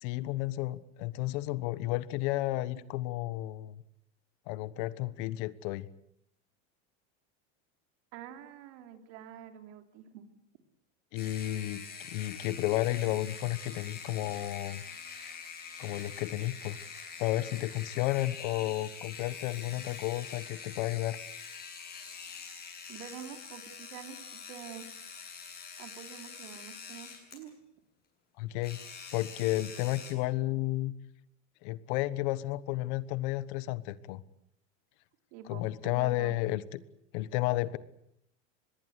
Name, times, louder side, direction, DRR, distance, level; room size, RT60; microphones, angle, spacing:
voice 1, 0.0-3.8 4.5-5.9 11.1-14.8 15.8-16.8 17.2-21.2 28.4-28.8 29.1-30.9 31.6-34.2 35.5-36.8 37.1-37.8, left 16 dB, 65° left, 17 dB, 1.3 m, -32 dB
voice 2, 8.1-10.3 22.9-24.9 25.8-27.5 35.3-36.4, right 10 dB, 65° right, 6 dB, 3.7 m, -47 dB
sound 1, 11.1-27.5 28.6-30.1, left 6 dB, 25° left, 7.8 m, -45 dB
24.5 x 21.0 x 8.2 m, 0.74 s
supercardioid pair, 140°, 36 cm